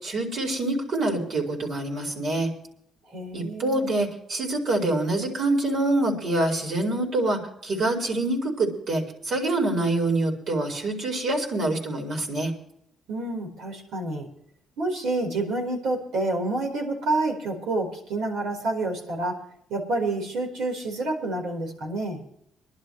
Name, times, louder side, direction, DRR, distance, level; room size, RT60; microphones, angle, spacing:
voice 1, 0.0-2.5 3.3-12.5, right 2 dB, 60° right, 1 dB, 4.8 m, -26 dB
voice 2, 3.1-3.9 13.1-14.3 14.8-19.4 19.7-22.2, right 2 dB, 80° right, 1 dB, 4.7 m, -28 dB
25.0 x 11.5 x 3.3 m, 0.74 s
cardioid pair, 90°, 0 cm